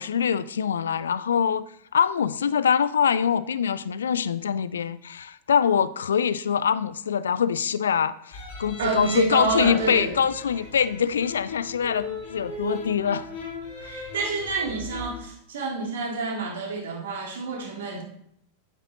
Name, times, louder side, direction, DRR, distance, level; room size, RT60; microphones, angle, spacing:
voice 1, 0.0-13.3 13.8-13.9, left 7 dB, 65° left, 16 dB, 0.3 m, -24 dB
sound 1, 8.3-15.1, left 2 dB, 50° left, 4.0 m, -38 dB
voice 2, 8.8-10.1 13.8-18.0, right 4 dB, 60° right, 1 dB, 1.8 m, -28 dB
9.1 x 8.8 x 2.8 m, 0.70 s
figure-of-eight pair, 90°, 0 cm